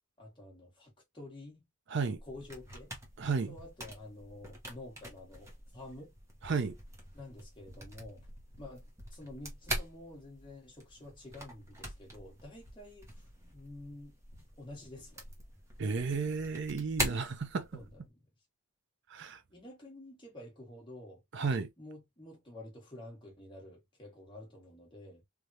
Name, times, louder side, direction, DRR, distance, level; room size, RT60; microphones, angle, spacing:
voice 1, 0.2-1.6 2.0-2.9 3.5-6.1 7.1-8.3 8.6-13.3 13.5-14.1 14.6-15.2 17.7-18.2 19.5-21.2 21.8-25.2, left 1 dB, 20° left, 1.2 m, -49 dB
voice 2, 1.9-2.2 3.2-3.6 6.4-6.8 15.8-17.8 19.1-19.4 21.3-21.7, right 5 dB, 50° right, 0.4 m, -33 dB
sound 1, 2.1-18.0, right 1 dB, 15° right, 0.8 m, -44 dB
3.2 x 2.3 x 2.6 m
head